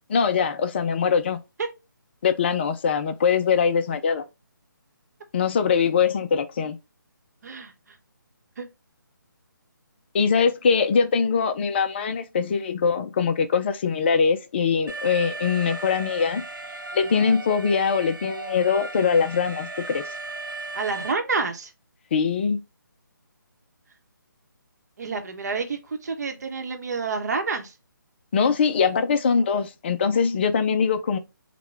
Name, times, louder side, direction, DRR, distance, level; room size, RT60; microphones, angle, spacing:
voice 1, 0.1-1.4 2.2-4.2 5.3-6.8 10.1-16.4 16.9-20.0 22.1-22.6 28.3-31.2, left 6 dB, 30° left, 0.3 m, -22 dB
Alarm, 14.9-21.1, right 3 dB, 85° right, 0.8 m, -36 dB
voice 2, 20.7-21.7 25.0-27.7, right 4 dB, 50° right, 0.8 m, -28 dB
4.7 x 2.2 x 3.2 m
figure-of-eight pair, 150°, 11 cm